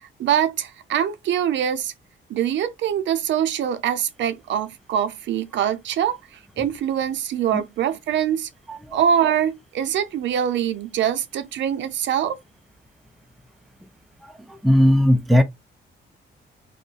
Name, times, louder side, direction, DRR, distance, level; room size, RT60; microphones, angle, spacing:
voice 1, 0.0-1.9 2.3-6.2 6.6-8.5 8.9-12.4, right 9 dB, 65° right, 0.5 m, -23 dB
voice 2, 14.2-15.4, left 1 dB, ahead, 0.3 m, -18 dB
2.4 x 2.1 x 3.7 m
cardioid pair, 90°, 20 cm